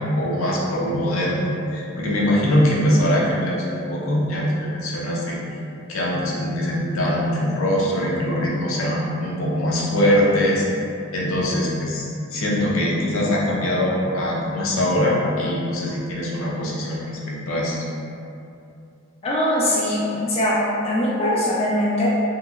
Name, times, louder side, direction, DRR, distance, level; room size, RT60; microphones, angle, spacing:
voice 1, 0.0-5.4 5.9-10.7 11.1-17.8, left 1 dB, 75° left, -4 dB, 0.6 m, -22 dB
voice 2, 19.2-22.1, left 1 dB, 30° left, -6 dB, 0.3 m, -21 dB
2.8 x 2.8 x 2.4 m, 2.6 s
head